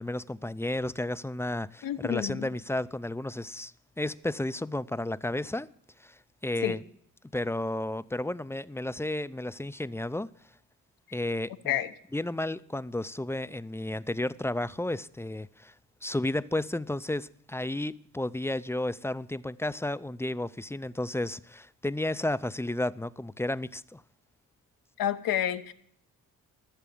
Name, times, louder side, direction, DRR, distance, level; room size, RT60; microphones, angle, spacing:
voice 1, 0.0-5.7 6.0-6.2 6.4-6.8 7.3-10.3 11.1-11.7 12.1-15.7 16.0-24.0, left 1 dB, 10° left, 0.5 m, -32 dB
voice 2, 1.8-2.5 6.6-6.8 11.7-11.9 25.0-25.7, left 11 dB, 85° left, 1.1 m, -29 dB
15.0 x 7.4 x 8.6 m
cardioid pair, 95°, 33 cm